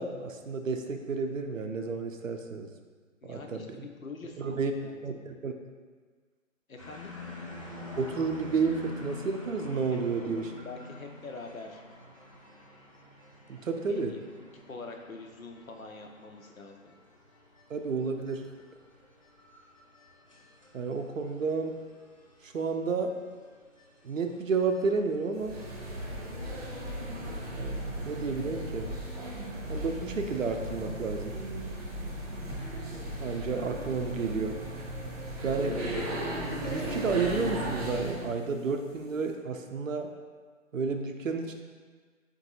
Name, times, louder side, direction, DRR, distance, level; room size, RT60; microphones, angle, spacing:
voice 1, 0.0-2.7 3.2-3.9 4.4-4.7 5.0-5.5 8.0-10.5 13.5-14.1 17.7-18.4 20.7-21.8 22.4-23.2 24.0-25.6 27.5-28.9 29.7-31.3 33.2-34.6 35.4-35.8 36.7-40.1 40.7-41.5, right 4 dB, 75° right, 5 dB, 0.5 m, -31 dB
voice 2, 3.2-5.2 6.7-7.1 9.9-11.8 13.8-16.9, left 3 dB, 85° left, 3 dB, 0.6 m, -45 dB
sound 1, 6.8-26.3, left 3 dB, 25° left, 0.4 m, -47 dB
sound 2, 25.4-38.3, right 1 dB, 30° right, 0.9 m, -36 dB
3.9 x 2.6 x 3.9 m, 1.5 s
figure-of-eight pair, 135°, 40 cm